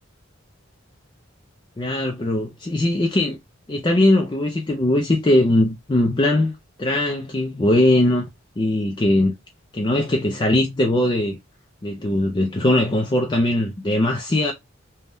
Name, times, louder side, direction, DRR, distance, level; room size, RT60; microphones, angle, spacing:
voice 1, 1.8-3.4 3.7-6.5 6.8-8.3 8.6-9.4 9.7-11.4 11.8-14.5, left 1 dB, 20° left, 0.4 m, -20 dB
3.4 x 2.2 x 2.5 m
head